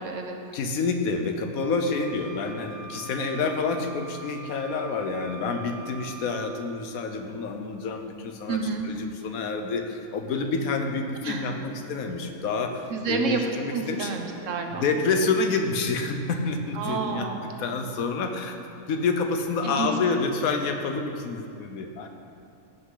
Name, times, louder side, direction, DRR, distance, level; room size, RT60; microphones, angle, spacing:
voice 1, 0.0-0.4 8.5-8.9 11.2-11.4 12.9-14.9 16.7-17.5 19.6-19.9, right 5 dB, 65° right, 3 dB, 1.1 m, -29 dB
voice 2, 0.5-8.6 8.8-14.1 14.7-17.3 17.6-18.6 18.9-22.1, left 4 dB, 80° left, 5 dB, 1.2 m, -28 dB
Wind instrument woodwind instrument, 1.6-6.7, right 6 dB, 20° left, 0.8 m, -43 dB
15.5 x 5.5 x 3.9 m, 2.6 s
omnidirectional pair, 1.5 m